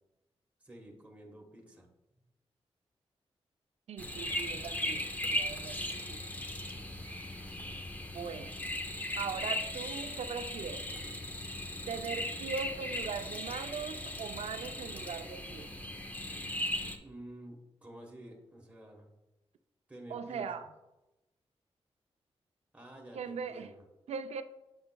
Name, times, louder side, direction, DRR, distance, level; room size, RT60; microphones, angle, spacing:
voice 1, 0.6-1.9 17.0-19.1 19.9-20.6 22.7-23.8, right 1 dB, 10° right, 1.1 m, -50 dB
voice 2, 3.9-6.2 8.1-8.5 9.2-10.9 11.9-15.7 20.1-20.7 23.1-23.7 24.1-24.4, right 6 dB, 85° right, 0.4 m, -40 dB
sound 1, 4.0-17.0, left 1 dB, 15° left, 0.5 m, -38 dB
7.7 x 5.5 x 2.2 m
wide cardioid pair, 115°, 11 cm